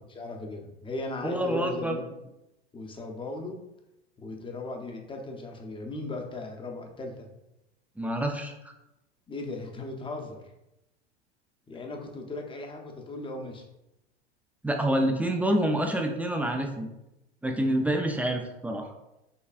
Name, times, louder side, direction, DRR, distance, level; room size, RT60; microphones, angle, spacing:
voice 1, 0.1-2.1 2.7-3.6 4.2-7.3 9.3-10.4 11.7-13.6 17.4-17.9, left 2 dB, 15° left, 2 dB, 0.7 m, -37 dB
voice 2, 1.2-2.0 8.0-8.5 14.6-16.9 17.4-18.9, right 1 dB, 5° right, 3 dB, 0.4 m, -27 dB
5.6 x 3.1 x 2.4 m, 0.91 s
hypercardioid pair, 95°, 33 cm